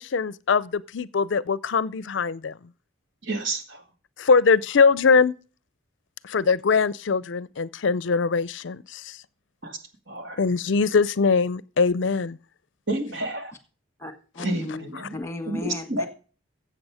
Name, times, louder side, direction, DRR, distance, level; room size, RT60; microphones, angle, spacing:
voice 1, 0.0-2.5 4.2-5.3 6.2-9.2 10.4-12.4, left 5 dB, 65° left, 0.5 m, -22 dB
voice 2, 3.2-3.8 9.6-9.8 10.1-10.4 12.9-13.5 14.4-15.1 15.5-16.1, right 2 dB, 65° right, 2.2 m, -30 dB
voice 3, 14.0-14.9 15.1-16.1, left 2 dB, 15° left, 1.6 m, -35 dB
15.5 x 7.8 x 4.9 m
head